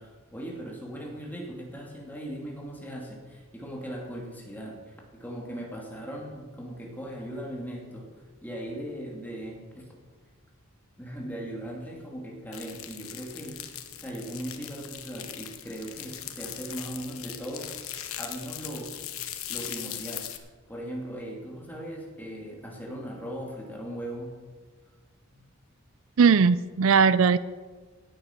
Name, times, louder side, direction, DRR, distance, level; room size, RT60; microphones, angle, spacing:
voice 1, 0.0-8.1 8.4-9.9 11.0-13.6 13.9-17.7 18.2-19.0 19.5-24.4 25.3-25.4, right 1 dB, 10° left, -1 dB, 2.7 m, -38 dB
sound 1, 12.5-20.4, left 11 dB, 80° left, 1.2 m, -39 dB
voice 2, 26.2-27.4, right 5 dB, 70° right, 16 dB, 0.4 m, -19 dB
17.0 x 8.9 x 5.9 m, 1.4 s
head